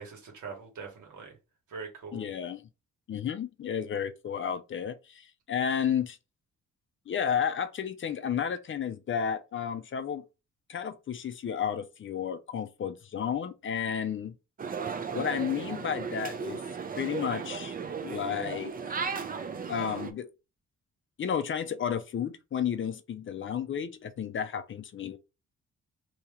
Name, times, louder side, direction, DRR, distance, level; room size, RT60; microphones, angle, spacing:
voice 1, 0.0-1.4 1.7-2.3, right 5 dB, 80° right, 1.5 m, -42 dB
voice 2, 2.1-2.6 3.1-6.2 7.1-10.2 10.7-14.4 15.1-16.6 17.0-17.7 18.0-18.9 19.7-20.3 21.2-25.2, left 8 dB, 40° left, 0.4 m, -32 dB
sound 1, 14.6-20.1, right 5 dB, 30° right, 0.4 m, -35 dB
2.8 x 2.8 x 3.6 m
wide cardioid pair, 135°, 30 cm